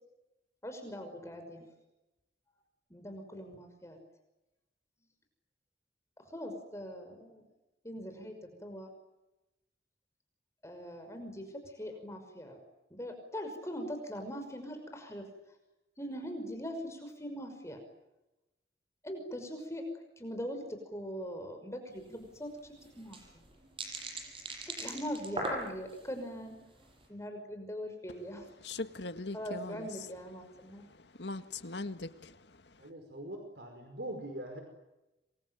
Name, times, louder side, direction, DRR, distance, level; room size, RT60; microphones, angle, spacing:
voice 1, 0.6-1.6 2.9-4.0 6.2-7.4 7.8-8.9 10.6-12.6 12.9-15.3 16.0-17.8 19.0-23.4 24.7-26.6 27.1-28.5 29.3-30.8, equal, 15° left, 5 dB, 5.7 m, -41 dB
sound 1, 22.0-22.1 22.3-22.4 22.8-26.1 26.6-26.9, right 1 dB, 30° right, 7.4 m, -39 dB
voice 2, 28.6-30.1 30.6-32.9, left 3 dB, 75° left, 10 dB, 1.8 m, -41 dB
voice 3, 32.8-34.6, right 1 dB, 65° right, 5 dB, 5.2 m, -42 dB
27.5 x 23.5 x 9.2 m, 0.98 s
head